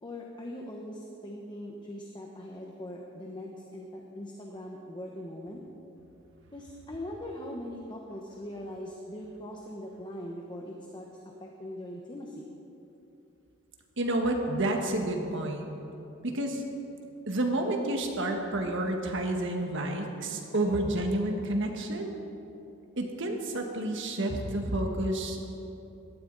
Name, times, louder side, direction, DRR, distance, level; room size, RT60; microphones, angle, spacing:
voice 1, 0.0-5.6 6.5-11.1 11.4-12.5, left 1 dB, 20° left, -1 dB, 1.0 m, -41 dB
voice 2, 14.0-15.7 16.2-16.6 17.3-22.1 23.0-25.4, right 1 dB, 65° right, 2 dB, 1.6 m, -30 dB
17.0 x 13.0 x 4.0 m, 2.9 s
head